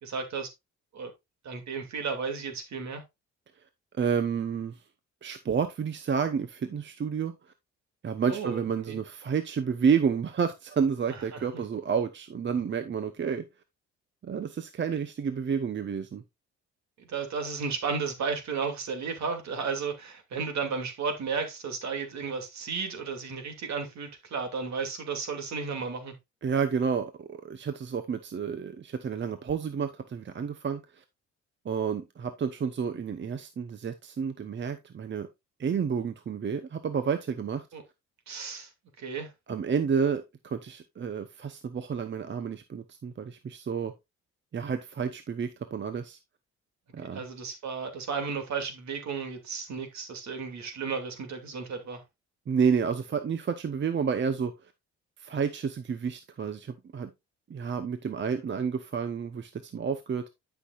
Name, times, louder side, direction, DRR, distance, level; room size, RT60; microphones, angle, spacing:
voice 1, 0.0-0.5 0.9-1.1 1.4-3.0 8.3-9.0 11.3-11.6 17.0-26.1 37.7-37.8 38.3-38.7 39.0-39.3 47.1-52.0, right 5 dB, 65° right, 2.6 m, -33 dB
voice 2, 4.0-4.8 5.2-7.3 8.0-13.4 14.2-16.2 26.4-31.0 31.6-35.3 35.6-37.7 39.5-43.9 44.5-46.2 46.9-47.3 52.5-54.5 55.2-57.1 57.5-60.3, right 6 dB, 40° right, 0.8 m, -30 dB
11.0 x 6.0 x 2.5 m
cardioid pair, 90°, 30 cm